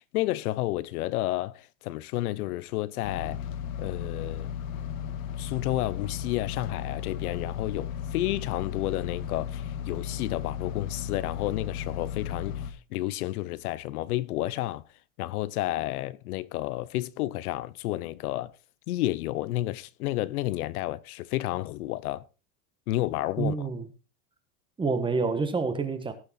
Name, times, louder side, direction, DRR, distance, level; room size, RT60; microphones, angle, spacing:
voice 1, 0.0-3.4 3.8-4.5 5.4-14.8 15.2-18.5 18.9-22.2 22.9-23.5, left 16 dB, 85° left, 0.8 m, -31 dB
sound 1, 3.0-12.7, left 8 dB, 65° left, 1.7 m, -35 dB
voice 2, 23.4-23.9 24.8-26.1, right 4 dB, 10° right, 1.2 m, -28 dB
17.5 x 6.7 x 4.1 m
supercardioid pair, 155°, 43 cm